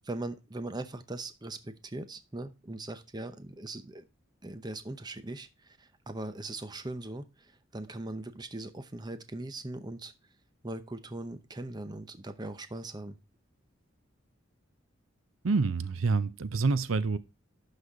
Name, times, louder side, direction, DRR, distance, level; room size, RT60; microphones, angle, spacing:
voice 1, 0.0-4.0 4.4-10.1 10.6-13.2, right 2 dB, 20° right, 0.7 m, -40 dB
voice 2, 15.4-17.2, right 4 dB, 90° right, 0.6 m, -27 dB
11.5 x 4.2 x 4.7 m
head